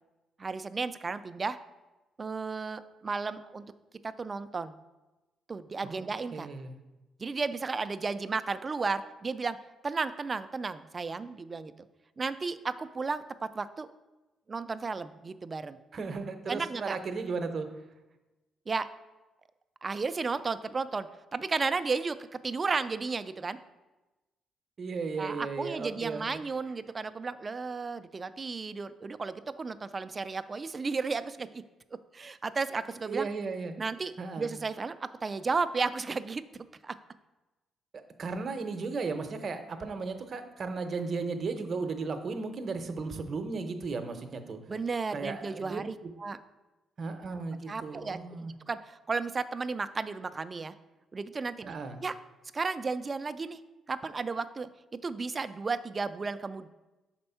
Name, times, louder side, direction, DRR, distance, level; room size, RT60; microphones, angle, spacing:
voice 1, 0.4-1.6 2.2-3.7 4.0-4.8 5.5-6.5 7.2-9.6 9.8-11.9 12.2-13.9 14.5-15.8 16.5-17.0 18.7-18.9 19.8-23.6 25.2-31.6 32.1-33.3 33.8-36.4 36.8-37.0 44.7-46.4 47.7-48.2 48.7-50.7 51.1-51.7 52.0-52.1 52.5-53.6 53.9-56.7, right 4 dB, 30° right, 13 dB, 0.3 m, -33 dB
voice 2, 5.8-6.8 15.9-17.7 24.8-26.2 33.0-33.7 34.2-34.6 38.2-44.6 45.1-45.8 47.0-48.5 51.6-52.0, right 4 dB, 45° right, 7 dB, 0.7 m, -35 dB
5.3 x 4.3 x 5.6 m, 1.1 s
cardioid pair, 90°, 0 cm